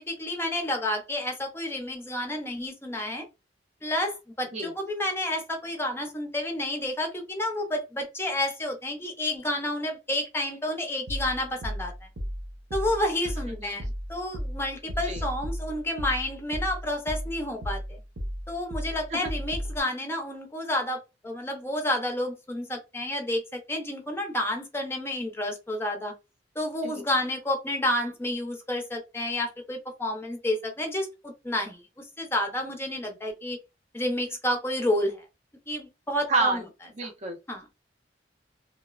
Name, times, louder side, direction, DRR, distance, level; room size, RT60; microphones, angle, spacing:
voice 1, 0.0-3.2 3.8-11.9 12.7-18.0 18.5-26.1 26.6-33.6 33.9-35.2 35.7-36.6 37.5-37.6, left 1 dB, 15° left, 0.5 m, -30 dB
sound 1, 11.1-19.8, equal, 80° right, 0.8 m, -35 dB
voice 2, 14.9-15.2 19.1-19.3 26.8-27.0 33.0-33.1 36.3-36.7 37.0-37.4, right 3 dB, 40° right, 0.5 m, -29 dB
3.0 x 2.0 x 2.3 m
head